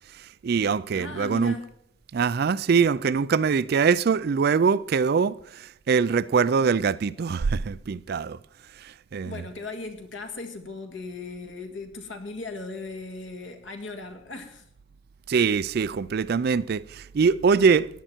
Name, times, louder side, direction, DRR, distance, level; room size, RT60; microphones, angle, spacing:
voice 1, 0.4-1.5 2.1-5.4 5.9-8.4 9.1-9.3 15.3-17.9, right 5 dB, 50° right, 0.4 m, -23 dB
voice 2, 0.9-1.7 9.3-14.6, left 3 dB, 65° left, 1.9 m, -37 dB
15.5 x 10.5 x 4.4 m
head